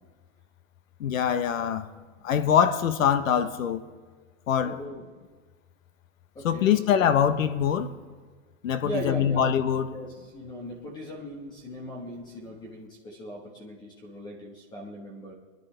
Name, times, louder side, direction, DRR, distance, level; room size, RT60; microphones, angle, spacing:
voice 1, 1.0-1.9 2.2-3.8 4.5-4.8 6.4-7.9 8.6-9.9, left 8 dB, 80° left, 1.2 m, -23 dB
voice 2, 4.6-5.0 6.3-6.7 8.8-9.5 9.9-15.3, equal, 10° left, 1.4 m, -39 dB
22.5 x 10.5 x 3.4 m
supercardioid pair, 170°, 39 cm